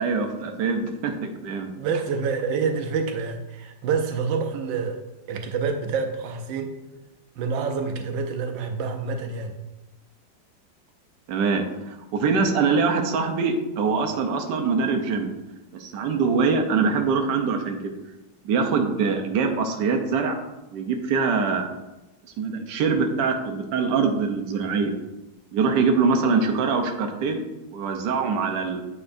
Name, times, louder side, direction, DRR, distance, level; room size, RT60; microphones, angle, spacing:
voice 1, 0.0-1.7 11.3-15.3 15.7-17.9 18.4-20.3 20.7-21.6 22.4-24.9 25.5-27.4 27.7-28.8, right 5 dB, 70° right, 3 dB, 1.3 m, -23 dB
voice 2, 1.8-5.0 5.3-6.7 7.4-9.5, right 5 dB, 90° right, 5 dB, 1.4 m, -27 dB
8.5 x 4.8 x 2.6 m, 0.98 s
omnidirectional pair, 2.0 m